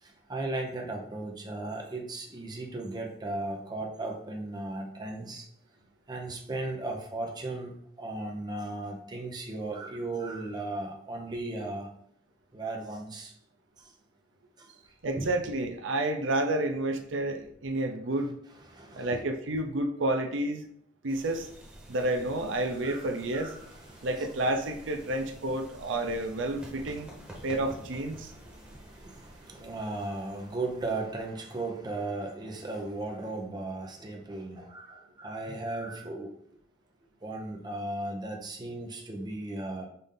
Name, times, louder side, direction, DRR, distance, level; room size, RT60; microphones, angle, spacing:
voice 1, 0.0-5.5 6.1-11.9 12.5-13.3 13.8-13.9 14.6-14.7 15.2-15.3 18.7-19.2 22.8-23.1 23.3-24.3 27.3-27.5 28.3-36.3 37.2-39.9, right 2 dB, 25° right, 1 dB, 0.7 m, -36 dB
voice 2, 15.0-18.4 18.9-20.6 21.0-21.5 21.9-23.5 24.0-27.1 27.4-28.3, right 1 dB, 90° right, 5 dB, 0.6 m, -30 dB
sound 1, 21.1-31.4, equal, 5° right, 1.3 m, -50 dB
5.3 x 2.6 x 3.7 m, 0.67 s
head